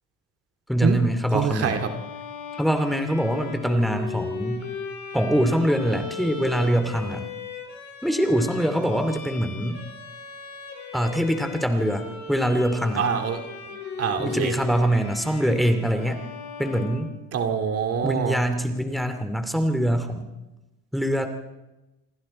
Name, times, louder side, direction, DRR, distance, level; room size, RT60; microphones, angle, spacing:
voice 1, 0.7-1.8 2.6-4.7 5.1-7.2 8.0-9.8 10.9-13.0 14.2-16.2 16.6-17.1 18.0-20.3 20.9-21.3, equal, ahead, 7 dB, 2.7 m, -24 dB
voice 2, 1.3-1.9 13.0-14.5 17.3-18.4, right 7 dB, 50° right, 6 dB, 2.5 m, -25 dB
Bowed string instrument, 1.6-17.6, left 4 dB, 60° left, 7.9 m, -38 dB
27.5 x 23.0 x 4.4 m, 1.0 s
supercardioid pair, 100°, 31 cm